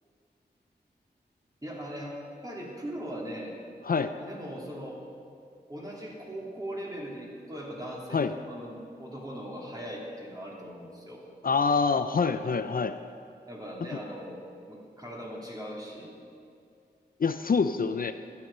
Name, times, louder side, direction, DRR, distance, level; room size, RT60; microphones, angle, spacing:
voice 1, 1.6-3.5 4.2-5.0 5.7-11.2 13.5-14.4 14.7-16.1, equal, 20° right, -3 dB, 3.1 m, -39 dB
voice 2, 11.4-13.0 17.2-18.1, left 5 dB, 55° left, 9 dB, 0.5 m, -25 dB
11.5 x 9.6 x 5.5 m, 2.3 s
cardioid pair, 45°, 18 cm